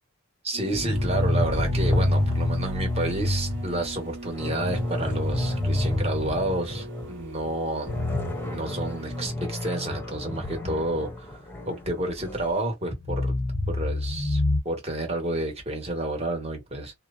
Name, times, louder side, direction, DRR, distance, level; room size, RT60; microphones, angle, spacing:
voice 1, 0.4-7.9 8.5-11.4 11.7-13.3 13.7-16.9, right 1 dB, 30° right, 1.1 m, -30 dB
sound 1, 0.5-9.3, right 1 dB, 55° right, 0.7 m, -41 dB
sound 2, 0.7-7.2 7.5-7.6 7.9-12.5 13.0-14.6, left 1 dB, 10° left, 0.7 m, -28 dB
2.9 x 2.0 x 2.4 m
head